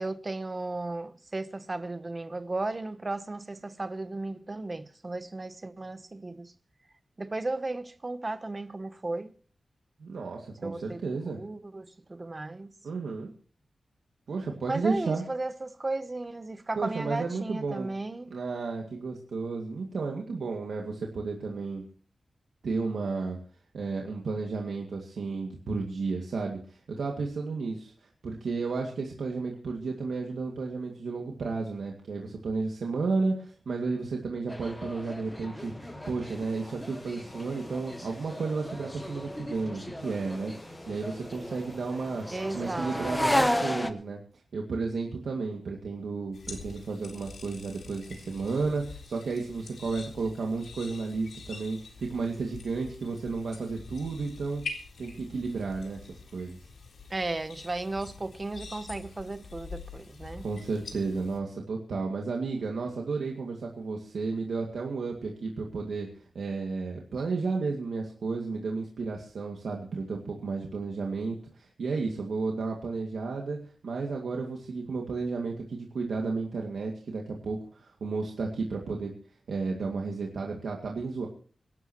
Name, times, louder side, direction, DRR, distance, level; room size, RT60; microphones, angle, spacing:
voice 1, 0.0-6.5 7.2-9.3 10.6-12.8 14.7-18.3 42.3-43.6 57.1-60.5, right 2 dB, 25° right, 0.9 m, -35 dB
voice 2, 10.0-11.4 12.8-13.3 14.3-15.2 16.8-17.9 18.3-21.8 22.6-23.4 23.7-27.9 28.2-35.7 36.1-42.3 42.5-44.2 44.5-54.6 55.0-56.6 60.4-66.1 66.3-73.6 73.8-79.1 79.5-81.3, right 4 dB, 85° right, 2.1 m, -32 dB
sound 1, 34.5-43.9, left 1 dB, 10° left, 0.9 m, -34 dB
sound 2, 35.6-43.2, left 1 dB, 30° left, 7.6 m, -52 dB
sound 3, 46.3-61.4, left 4 dB, 80° left, 3.7 m, -45 dB
25.5 x 12.0 x 3.0 m
wide cardioid pair, 180°, 0 cm